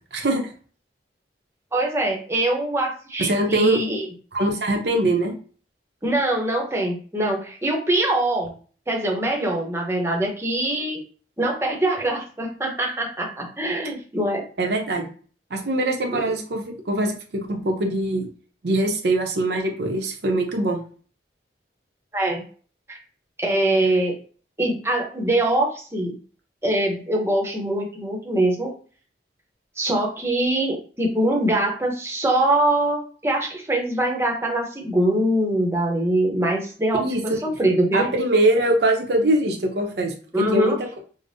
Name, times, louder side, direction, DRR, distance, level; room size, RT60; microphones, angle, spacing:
voice 1, 0.1-0.4 3.2-3.8 4.3-5.3 14.6-15.1 15.5-18.3 18.6-20.8 36.9-41.0, right 1 dB, 65° right, 3 dB, 0.7 m, -23 dB
voice 2, 1.7-4.1 6.0-8.5 8.9-11.0 11.4-14.4 16.1-16.3 22.1-22.4 22.9-23.0 23.4-24.1 24.6-26.2 26.6-28.7 29.8-38.1 40.3-40.8, right 1 dB, 15° right, 0 dB, 0.7 m, -23 dB
5.0 x 2.0 x 2.6 m, 0.41 s
head